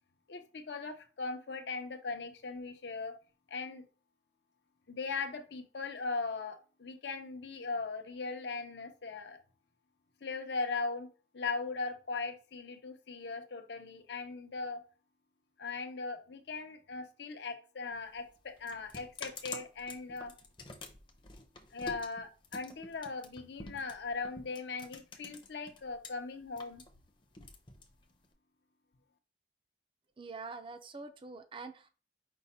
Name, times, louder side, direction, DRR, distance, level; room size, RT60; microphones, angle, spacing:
voice 1, 0.3-3.2 3.5-3.8 4.9-9.4 10.2-11.1 11.3-14.8 15.6-20.3 21.7-26.8, left 4 dB, 70° left, 7 dB, 0.6 m, -39 dB
sound 1, 17.9-26.1 26.4-28.3, left 3 dB, 25° left, 0.6 m, -48 dB
voice 2, 30.2-31.9, right 4 dB, 30° right, 7 dB, 0.4 m, -45 dB
5.3 x 2.1 x 4.1 m, 0.36 s
head